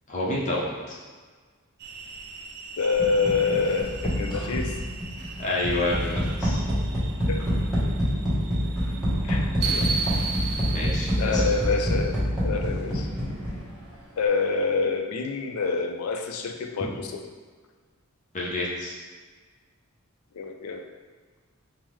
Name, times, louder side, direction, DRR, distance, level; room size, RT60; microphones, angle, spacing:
voice 1, 0.1-1.0 5.4-6.6 10.7-11.6 18.3-19.0, left 2 dB, 35° left, -5 dB, 0.6 m, -29 dB
sound 1, 1.8-12.2, right 4 dB, 50° right, 0.4 m, -36 dB
voice 2, 2.8-4.8 7.3-7.4 9.2-9.9 11.2-13.1 14.2-17.2 20.3-20.8, left 4 dB, 80° left, 5 dB, 0.4 m, -27 dB
sound 2, 3.0-13.9, equal, 5° right, 1.0 m, -27 dB
5.4 x 2.1 x 3.1 m, 1.5 s
head